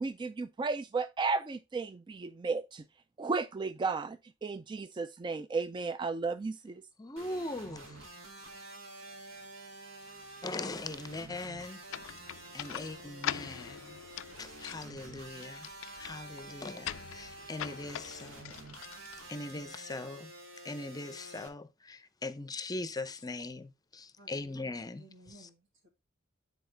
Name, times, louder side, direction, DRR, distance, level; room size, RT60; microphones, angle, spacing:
voice 1, 0.0-2.8 3.2-6.8, right 4 dB, 25° right, 0.3 m, -34 dB
voice 2, 7.0-8.0 10.4-12.1 12.5-14.0 14.4-15.7 16.0-18.5 19.3-20.3 20.6-25.0, left 2 dB, 20° left, 0.6 m, -40 dB
sound 1, 7.2-21.5, right 2 dB, 90° right, 2.0 m, -49 dB
sound 2, 11.9-19.7, left 11 dB, 70° left, 0.3 m, -43 dB
voice 3, 24.2-25.9, right 1 dB, 70° right, 2.2 m, -57 dB
9.5 x 4.1 x 3.8 m
head